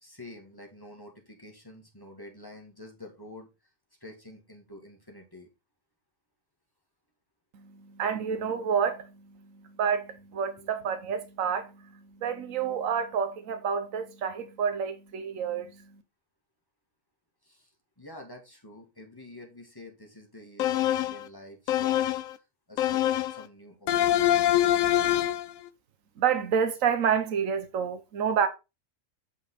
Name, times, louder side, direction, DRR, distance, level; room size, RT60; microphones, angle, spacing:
voice 1, 0.0-3.5 4.0-5.5 10.6-10.7 17.4-23.0 23.3-24.5, left 1 dB, 15° left, 2.1 m, -48 dB
voice 2, 7.5-15.8 26.2-28.5, right 7 dB, 75° right, 1.3 m, -29 dB
sound 1, 20.6-21.3 21.7-22.3 22.8-23.4 23.9-25.5, left 12 dB, 85° left, 1.1 m, -24 dB
8.8 x 5.2 x 4.0 m
omnidirectional pair, 1.4 m